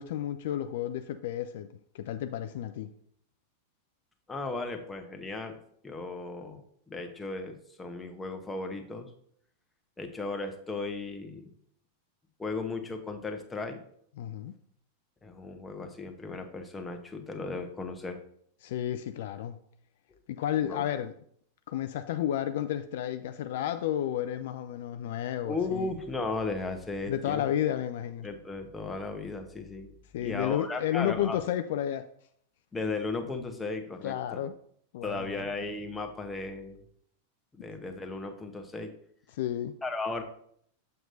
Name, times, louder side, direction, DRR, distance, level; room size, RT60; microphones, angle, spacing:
voice 1, 0.0-1.7 1.9-2.9 14.2-14.5 18.6-19.6 20.3-21.1 21.7-25.9 27.1-28.3 30.1-32.1 34.0-34.5 34.9-35.4 39.3-39.7, left 11 dB, 55° left, 0.3 m, -32 dB
voice 2, 4.3-5.6 5.8-9.1 10.0-11.5 12.4-13.8 15.2-18.2 20.6-20.8 25.4-27.4 28.2-31.4 32.7-34.4 35.0-36.8 37.5-38.9 39.8-40.2, left 3 dB, 10° left, 0.9 m, -36 dB
7.5 x 6.5 x 2.7 m
figure-of-eight pair, 90°, 0 cm